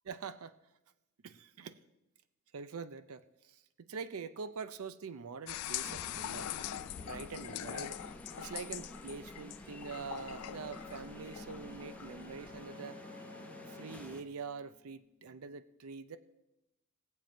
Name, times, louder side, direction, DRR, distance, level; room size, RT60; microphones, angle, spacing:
voice 1, 0.1-0.5 1.2-1.8 2.5-3.6 3.9-6.5 7.0-8.0 8.4-13.0 13.7-16.2, right 5 dB, 75° right, 13 dB, 0.5 m, -44 dB
sound 1, 5.5-12.7, left 11 dB, 90° left, 0.4 m, -43 dB
sound 2, 5.8-14.2, left 1 dB, 5° left, 0.8 m, -51 dB
Bowed string instrument, 9.9-15.4, left 2 dB, 55° right, 5.1 m, -54 dB
19.5 x 7.5 x 4.4 m, 0.93 s
head